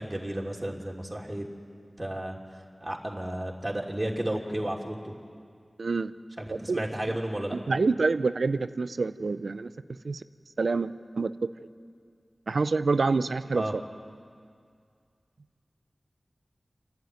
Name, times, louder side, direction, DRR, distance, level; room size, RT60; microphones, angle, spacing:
voice 1, 0.0-1.5 2.0-2.4 2.8-5.1 6.4-7.6 13.5-13.7, right 1 dB, 25° right, -2 dB, 3.0 m, -32 dB
voice 2, 5.8-6.1 6.5-6.8 7.7-9.7 10.0-10.2 10.6-11.5 12.5-13.6, right 4 dB, 85° right, 13 dB, 0.6 m, -27 dB
29.0 x 11.5 x 9.4 m, 2.2 s
cardioid pair, 40°, 0 cm